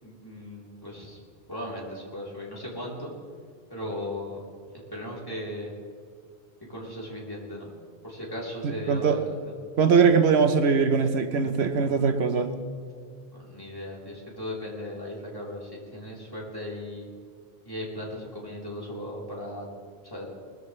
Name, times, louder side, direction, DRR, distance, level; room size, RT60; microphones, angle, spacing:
voice 1, 0.0-1.2 1.5-3.1 3.7-4.5 4.7-5.7 6.7-7.7 8.0-9.6 13.3-17.1 17.7-19.7 20.0-20.3, left 1 dB, 20° left, -5 dB, 3.5 m, -37 dB
voice 2, 8.6-9.2 9.8-12.5, right 5 dB, 80° right, 9 dB, 1.1 m, -21 dB
20.0 x 14.5 x 3.2 m, 2.3 s
omnidirectional pair, 1.1 m